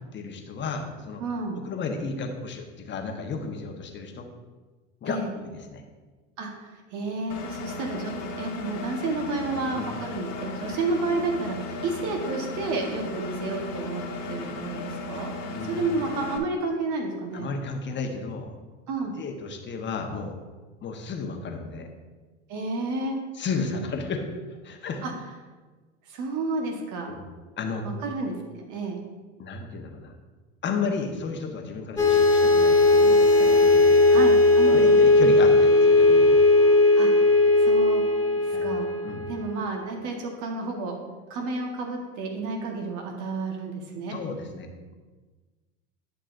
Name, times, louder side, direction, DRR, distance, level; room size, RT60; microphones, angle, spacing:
voice 1, 0.1-1.2 1.5-4.3 5.0-5.8 9.7-9.9 15.5-15.8 17.3-18.5 19.2-20.4 20.8-21.9 23.3-25.0 27.1-27.2 27.6-27.8 29.4-30.1 30.6-34.0 34.7-36.4 38.5-38.7 39.0-39.3 44.1-44.9, left 4 dB, 30° left, 3 dB, 1.1 m, -33 dB
voice 2, 1.2-1.6 5.0-5.3 6.4-14.0 14.3-15.3 15.7-17.5 18.9-19.1 22.5-23.2 25.0-25.1 26.1-27.1 27.8-29.0 34.0-35.0 37.0-37.2 37.5-38.0 38.4-38.9 39.3-41.0 41.3-44.2, right 3 dB, 55° right, 1 dB, 1.3 m, -31 dB
Engine, 7.3-16.4, left 3 dB, 50° left, 1.3 m, -36 dB
sound 1, 32.0-39.7, left 2 dB, 10° left, 1.5 m, -18 dB
10.5 x 6.0 x 2.6 m, 1.3 s
hypercardioid pair, 95°, 36 cm